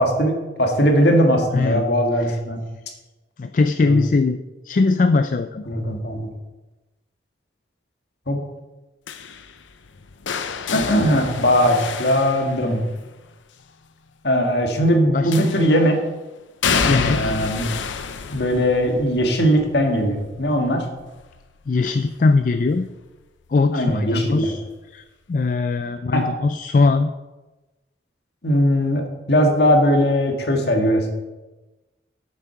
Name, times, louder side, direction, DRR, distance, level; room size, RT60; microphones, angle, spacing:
voice 1, 0.0-2.6 3.8-4.0 5.7-6.3 8.3-8.4 10.7-12.8 14.2-16.0 16.7-17.7 18.3-20.9 23.7-24.5 26.1-26.2 28.4-31.1, equal, 65° left, 3 dB, 1.7 m, -19 dB
voice 2, 1.5-1.9 2.3-2.4 3.4-4.4 4.7-5.6 15.1-15.5 16.9-17.3 21.7-22.9 23.5-24.6 24.9-27.1, left 3 dB, 45° left, 10 dB, 0.3 m, -20 dB
sound 1, 9.1-13.1 15.3-15.9 16.6-22.4 22.8-23.2 24.4-24.5, left 5 dB, 90° left, 0.7 m, -29 dB
8.2 x 7.3 x 5.8 m, 1.1 s
head